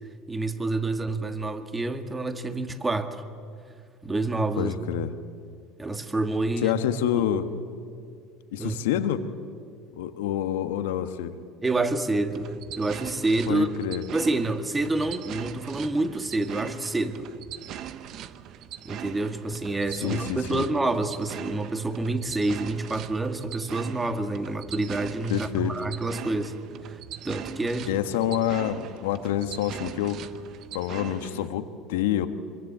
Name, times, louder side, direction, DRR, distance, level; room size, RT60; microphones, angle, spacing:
voice 1, 0.3-3.2 4.0-5.0 5.8-6.8 7.1-7.3 8.6-8.8 11.6-13.7 14.1-17.3 18.9-26.5 27.2-28.0, right 2 dB, 15° right, 8 dB, 2.0 m, -28 dB
voice 2, 4.6-5.1 6.6-7.5 8.5-9.2 9.9-11.3 13.5-14.0 20.0-20.6 25.3-25.8 27.9-30.2 30.7-32.3, left 11 dB, 85° left, 9 dB, 1.5 m, -27 dB
sound 1, 12.3-31.5, right 10 dB, 55° right, 1.1 m, -41 dB
25.0 x 23.0 x 8.8 m, 2.3 s
supercardioid pair, 95°, 0 cm